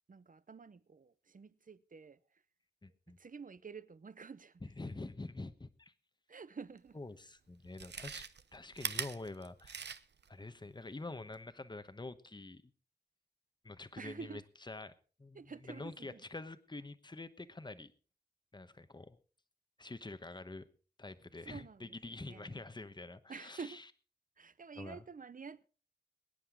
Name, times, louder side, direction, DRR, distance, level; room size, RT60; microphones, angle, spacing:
voice 1, 0.1-2.2 3.2-4.6 4.9-5.0 6.3-7.0 14.0-14.4 15.3-16.3 21.4-22.6 23.3-23.8 24.4-25.7, right 5 dB, 50° right, 0.7 m, -49 dB
voice 2, 2.8-3.2 4.6-5.9 6.9-8.2 8.5-9.9 10.3-12.7 13.6-14.4 14.7-14.9 15.2-17.9 18.5-19.2 19.8-20.6 21.0-23.8 24.8-25.0, left 2 dB, 25° left, 1.0 m, -46 dB
Chewing mastication, 6.9-7.0 7.6-10.3 10.7-10.8, right 6 dB, 90° right, 0.7 m, -42 dB
23.0 x 10.0 x 3.7 m
wide cardioid pair, 90°, 17 cm